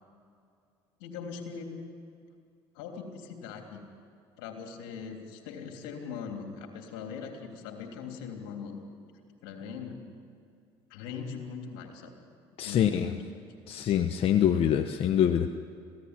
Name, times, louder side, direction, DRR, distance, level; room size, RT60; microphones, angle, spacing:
voice 1, 1.0-1.8 2.7-3.8 4.4-8.8 9.4-10.0 10.9-12.1 12.6-13.5, left 6 dB, 85° left, 3 dB, 3.3 m, -40 dB
voice 2, 12.6-13.1 13.7-15.5, left 9 dB, 55° left, 7 dB, 1.1 m, -25 dB
26.0 x 17.0 x 9.8 m, 2.4 s
supercardioid pair, 75°, 11 cm